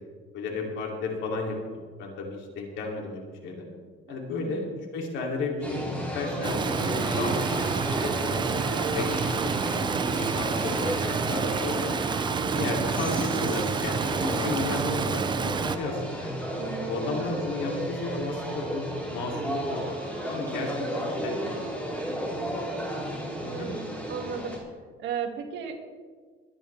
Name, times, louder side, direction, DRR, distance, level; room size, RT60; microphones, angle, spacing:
voice 1, 0.3-3.7 4.1-4.7 4.9-5.8 6.1-7.6 8.0-9.8 10.2-11.9 12.5-16.4 16.9-21.6 23.4-23.7, left 3 dB, 70° left, 0 dB, 3.1 m, -33 dB
voice 2, 4.1-4.7 16.6-17.3 21.1-21.5 23.4-24.7 25.0-25.8, right 7 dB, 65° right, 2 dB, 2.2 m, -36 dB
sound 1, 5.6-24.6, equal, 5° left, 3.6 m, -33 dB
Stream, 6.4-15.8, right 6 dB, 20° right, 0.5 m, -29 dB
21.5 x 10.5 x 3.5 m, 1.5 s
cardioid pair, 140°, 20 cm